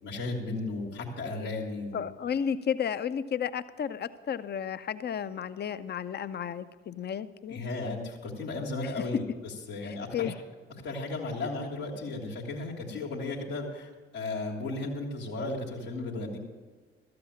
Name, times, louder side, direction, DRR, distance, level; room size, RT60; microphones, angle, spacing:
voice 1, 0.0-2.1 7.5-9.3 9.7-10.3 10.8-16.4, left 2 dB, 80° left, -5 dB, 1.8 m, -35 dB
voice 2, 1.9-7.6 8.8-9.0 9.8-10.4 12.9-13.0, left 8 dB, 35° left, 13 dB, 0.6 m, -33 dB
13.5 x 7.8 x 7.2 m, 1.4 s
figure-of-eight pair, 40°, 30 cm